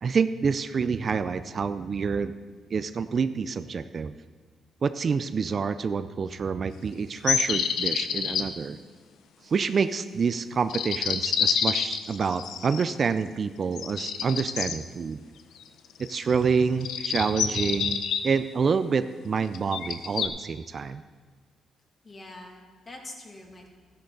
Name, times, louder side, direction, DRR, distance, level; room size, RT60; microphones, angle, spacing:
voice 1, 0.0-2.3 2.7-4.1 4.8-8.8 9.4-15.2 16.0-21.0, right 5 dB, 45° right, 12 dB, 0.4 m, -27 dB
sound 1, 7.2-8.4 10.7-13.0 13.8-14.8 16.0-16.4 16.8-18.2 19.5-20.3, left 7 dB, 85° left, 0.7 m, -27 dB
voice 2, 22.0-23.7, left 2 dB, 35° left, 0 dB, 2.2 m, -44 dB
13.5 x 10.5 x 3.9 m, 1.5 s
cardioid pair, 95°, 0 cm